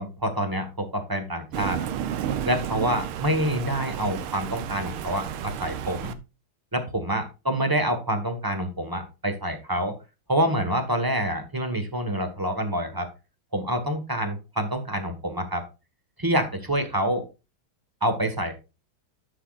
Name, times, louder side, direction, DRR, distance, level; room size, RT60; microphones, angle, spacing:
voice 1, 0.0-1.9 2.4-6.1 6.7-9.9 10.3-13.1 13.5-15.6 16.2-17.2 18.0-18.5, right 1 dB, 10° right, 6 dB, 1.2 m, -27 dB
Thunder, 1.5-6.1, right 9 dB, 80° right, 1.7 m, -32 dB
11.5 x 6.4 x 2.5 m, 0.28 s
omnidirectional pair, 2.3 m